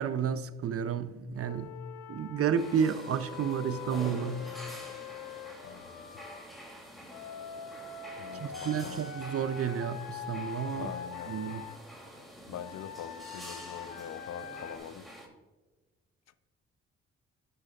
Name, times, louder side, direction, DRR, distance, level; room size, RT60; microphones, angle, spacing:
voice 1, 0.0-1.7 2.1-4.5 8.4-10.9 11.3-11.6, right 7 dB, 50° right, 0.6 m, -31 dB
Wind instrument woodwind instrument, 1.4-6.4 7.1-11.8 12.5-14.8, left 6 dB, 80° left, 1.1 m, -43 dB
sound 1, 2.5-15.3, equal, ahead, 2.8 m, -48 dB
voice 2, 5.6-6.1 8.2-9.0 10.7-11.4 12.5-15.1, left 9 dB, 60° left, 0.6 m, -44 dB
12.0 x 7.8 x 2.4 m
supercardioid pair, 50°, 30 cm